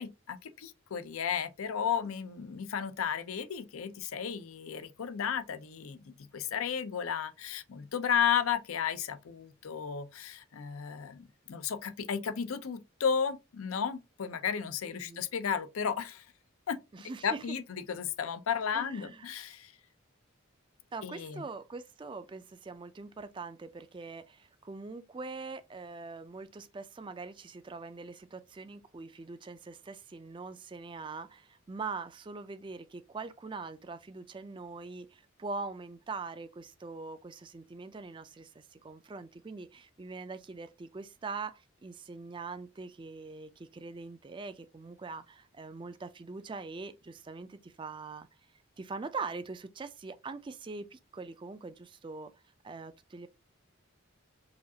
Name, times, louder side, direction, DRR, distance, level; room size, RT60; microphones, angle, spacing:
voice 1, 0.0-16.2 16.7-16.8 17.2-19.7 21.0-21.4, left 7 dB, 85° left, 0.5 m, -33 dB
voice 2, 14.9-15.3 16.9-17.4 18.7-19.2 20.9-48.3 48.8-52.3 52.6-53.3, right 4 dB, 25° right, 0.3 m, -43 dB
4.9 x 2.4 x 2.7 m
head